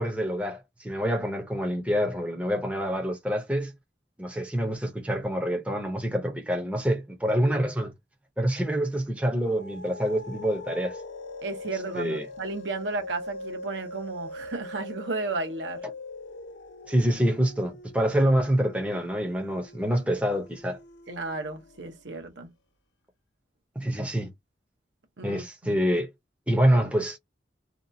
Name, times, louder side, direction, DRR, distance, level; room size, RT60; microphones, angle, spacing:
voice 1, 0.0-3.7 4.2-7.9 8.4-11.0 11.9-12.3 16.9-20.8 23.8-24.3 25.2-26.1 26.5-27.2, equal, 5° right, 0.6 m, -26 dB
sound 1, 9.2-22.0, left 2 dB, 80° left, 0.6 m, -42 dB
voice 2, 11.4-15.8 21.1-22.5 25.2-25.7, right 3 dB, 80° right, 0.8 m, -33 dB
2.8 x 2.2 x 2.6 m
head